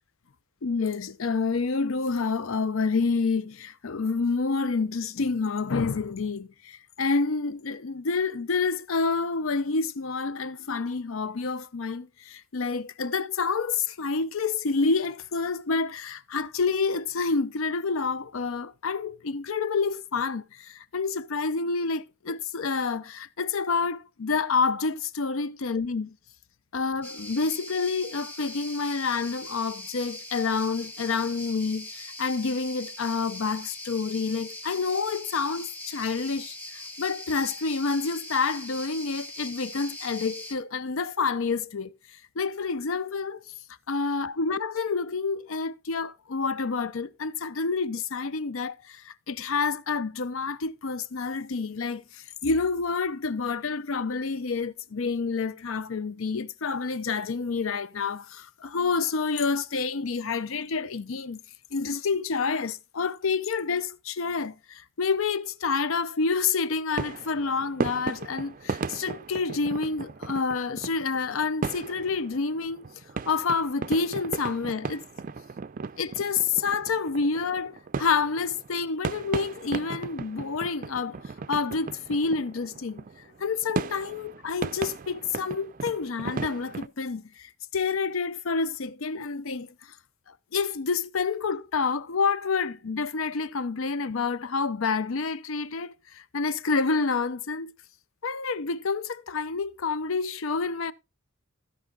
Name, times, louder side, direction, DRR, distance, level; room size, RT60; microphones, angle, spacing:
voice 1, 0.6-26.1 26.7-43.4 43.9-61.4 61.7-72.9 73.3-75.0 76.0-81.2 81.5-83.0 83.4-89.9 90.3-97.7 98.2-100.9, left 4 dB, 70° left, 0.6 m, -28 dB
sound 1, 27.0-40.5, left 1 dB, 10° left, 1.1 m, -41 dB
sound 2, 67.0-86.9, right 4 dB, 40° right, 0.4 m, -36 dB
15.5 x 5.5 x 3.7 m
head